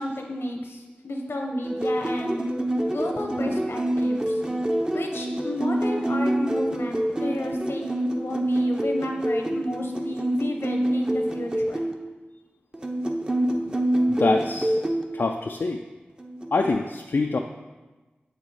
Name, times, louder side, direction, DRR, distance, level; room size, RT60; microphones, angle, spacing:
voice 1, 0.0-2.4 2.8-4.4 4.9-11.8, left 1 dB, 85° left, 2 dB, 0.9 m, -32 dB
sound 1, 1.6-11.9 12.7-15.0 16.2-16.7, right 1 dB, 20° right, 0.7 m, -26 dB
voice 2, 14.1-14.8 15.1-15.8 16.5-17.4, left 3 dB, 65° left, 3 dB, 0.3 m, -25 dB
6.3 x 4.8 x 4.1 m, 1.2 s
cardioid pair, 40°, 4 cm